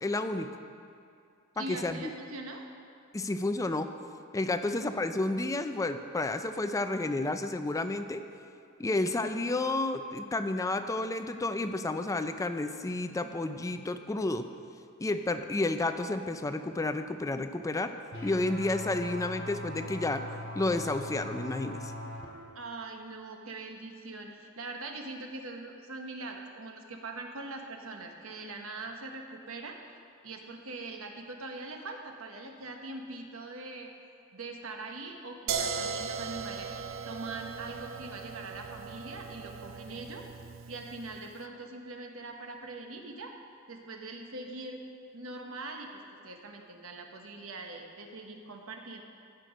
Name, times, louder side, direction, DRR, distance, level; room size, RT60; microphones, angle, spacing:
voice 1, 0.0-0.5 1.6-2.1 3.1-3.9 4.3-8.3 8.8-14.5 15.0-17.9 18.2-20.2 20.5-21.9, left 2 dB, 15° left, 9 dB, 0.4 m, -31 dB
voice 2, 1.5-2.6 4.6-4.7 22.5-29.8 30.2-33.9 34.3-36.7 37.0-40.3 40.7-43.3 43.7-44.9 45.1-49.0, right 2 dB, 85° right, 3 dB, 1.1 m, -42 dB
sound 1, 18.1-22.3, left 1 dB, 70° left, 2.9 m, -40 dB
sound 2, 35.5-41.3, right 6 dB, 70° right, 0.6 m, -38 dB
15.5 x 6.0 x 5.2 m, 2.5 s
head